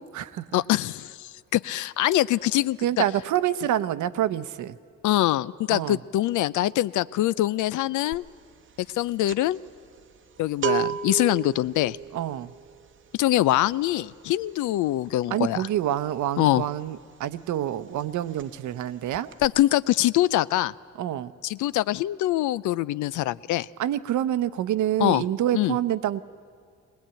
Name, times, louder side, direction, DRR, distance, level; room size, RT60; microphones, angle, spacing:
voice 1, 0.0-0.5 2.8-4.8 5.7-6.0 12.1-12.5 15.3-19.3 21.0-21.3 23.8-26.2, right 11 dB, 75° right, 14 dB, 0.8 m, -27 dB
voice 2, 0.5-2.8 5.0-8.2 8.9-9.6 10.4-12.0 13.1-15.6 16.4-16.6 19.4-20.7 21.4-23.7 25.0-25.2 25.5-25.8, left 14 dB, 80° left, 19 dB, 0.5 m, -24 dB
sound 1, 8.1-8.4 8.6-17.2 17.5-17.7 18.0-18.8 19.1-19.5, right 8 dB, 40° right, 0.8 m, -33 dB
20.0 x 19.5 x 8.9 m, 2.1 s
cardioid pair, 90°, 30 cm